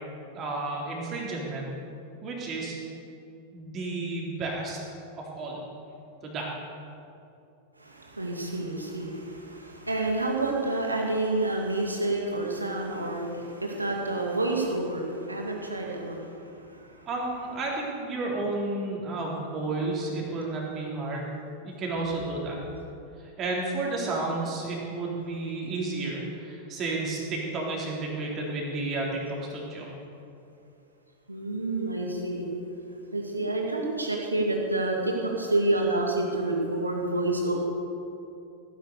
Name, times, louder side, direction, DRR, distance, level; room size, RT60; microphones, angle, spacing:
voice 1, 0.3-1.7 2.2-2.7 3.5-4.8 5.2-5.6 6.2-6.5 17.0-21.3 21.6-22.6 23.2-29.9, right 2 dB, 30° right, -3 dB, 3.8 m, -32 dB
voice 2, 7.8-17.0 20.2-20.3 31.3-32.5 33.1-37.6, right 2 dB, 85° right, 0 dB, 2.4 m, -29 dB
17.0 x 10.5 x 6.9 m, 2.7 s
figure-of-eight pair, 90°, 0 cm